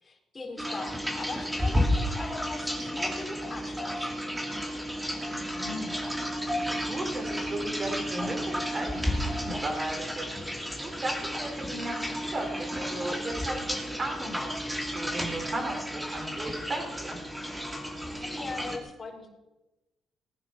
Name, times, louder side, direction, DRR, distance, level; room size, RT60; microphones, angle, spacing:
voice 1, 0.0-4.4 18.2-19.3, left 3 dB, 30° left, 0 dB, 4.0 m, -40 dB
sound 1, 0.6-18.8, equal, 5° right, 2.7 m, -32 dB
voice 2, 5.3-6.0 6.4-10.3 10.8-17.2, right 1 dB, 35° right, 2 dB, 4.4 m, -36 dB
19.5 x 9.3 x 6.0 m, 1.0 s
cardioid pair, 90°, 0 cm